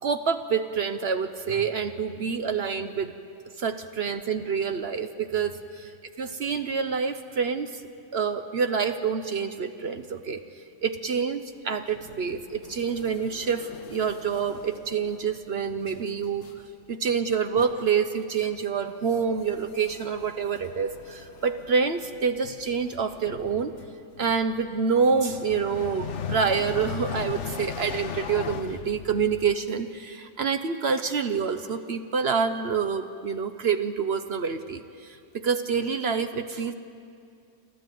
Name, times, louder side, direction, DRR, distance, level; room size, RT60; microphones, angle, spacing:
voice 1, 0.0-3.1 3.6-5.9 6.2-7.8 8.1-10.4 10.8-16.5 16.9-23.7 24.2-36.7, right 6 dB, 55° right, 9 dB, 0.7 m, -27 dB
sound 1, 11.9-15.5 15.8-16.1 16.4-16.7 17.1-17.2 17.6-17.9 18.4-18.6 18.8-29.5, left 8 dB, 55° left, 0.9 m, -39 dB
29.5 x 12.5 x 9.2 m, 2.4 s
omnidirectional pair, 2.0 m